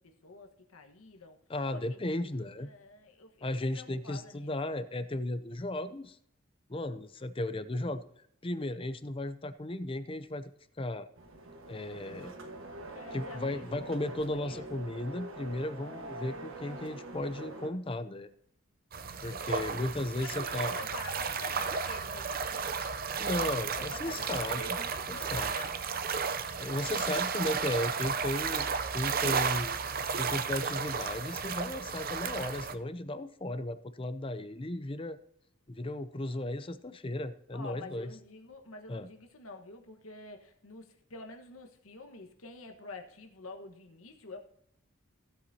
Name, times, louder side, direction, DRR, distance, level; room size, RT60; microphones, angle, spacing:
voice 1, 0.0-1.4 1.7-3.5 3.7-4.7 12.9-13.7 14.1-14.6 19.1-19.9 20.2-27.3 37.5-44.4, left 3 dB, 85° left, 4 dB, 1.4 m, -48 dB
voice 2, 1.5-2.7 3.4-6.2 6.7-8.0 8.4-10.5 10.8-11.1 11.7-12.3 13.1-18.3 19.2-20.8 23.2-24.6 25.1-25.5 26.6-29.8 30.2-35.2 35.7-38.1 38.9-39.1, left 1 dB, 25° left, 12 dB, 0.6 m, -35 dB
sound 1, 11.2-17.7, right 2 dB, 70° right, 1.4 m, -44 dB
sound 2, 18.9-32.7, right 6 dB, 45° right, 0.6 m, -33 dB
16.5 x 8.1 x 2.8 m, 0.71 s
head